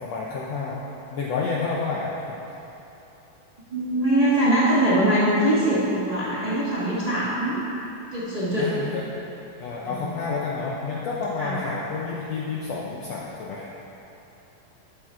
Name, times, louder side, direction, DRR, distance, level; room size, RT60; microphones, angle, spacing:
voice 1, 0.0-2.1 8.6-9.0 9.6-13.7, left 4 dB, 85° left, -4 dB, 1.4 m, -29 dB
voice 2, 3.7-7.6 8.1-8.7 9.9-10.1 11.4-11.5, right 1 dB, 20° right, -10 dB, 1.1 m, -22 dB
12.0 x 7.6 x 4.7 m, 3.0 s
omnidirectional pair, 4.1 m